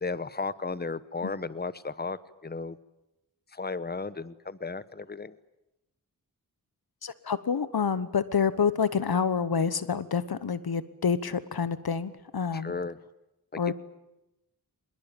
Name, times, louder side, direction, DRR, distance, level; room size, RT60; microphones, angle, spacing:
voice 1, 0.0-2.8 3.5-5.3 12.5-13.0 13.7-13.8, left 4 dB, 25° left, 16 dB, 1.0 m, -34 dB
voice 2, 7.0-12.7 13.6-13.7, left 6 dB, 75° left, 15 dB, 1.2 m, -28 dB
24.5 x 21.5 x 9.0 m, 0.91 s
cardioid pair, 50°, 37 cm